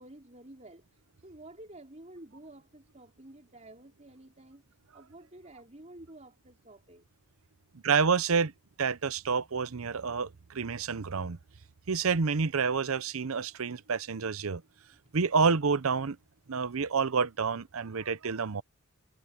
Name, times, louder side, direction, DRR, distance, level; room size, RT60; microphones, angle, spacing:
voice 1, 0.0-4.6 4.9-7.1, right 1 dB, 35° right, 4.4 m, -51 dB
voice 2, 7.8-8.5 8.8-11.4 11.9-14.6 15.1-16.2 16.5-18.6, right 5 dB, 75° right, 0.7 m, -28 dB
head